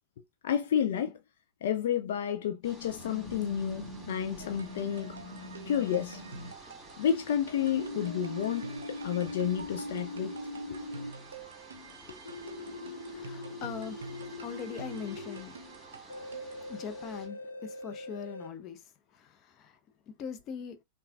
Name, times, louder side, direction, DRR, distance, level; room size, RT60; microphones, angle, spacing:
voice 1, 0.4-1.2 1.6-5.1 5.7-6.2 7.0-10.3 10.7-10.8 12.7-12.8, left 9 dB, 60° left, 0.4 m, -31 dB
sound 1, 2.6-17.3, right 1 dB, 10° right, 2.4 m, -52 dB
sound 2, 3.0-6.5 7.6-11.1 12.2-15.4 16.1-18.5, left 1 dB, 80° left, 0.8 m, -42 dB
sound 3, 4.4-16.7, right 4 dB, 70° right, 0.6 m, -48 dB
voice 2, 13.0-15.6 16.7-19.8 20.1-20.8, left 7 dB, 35° left, 0.7 m, -42 dB
5.6 x 2.3 x 2.5 m
figure-of-eight pair, 90°, 0 cm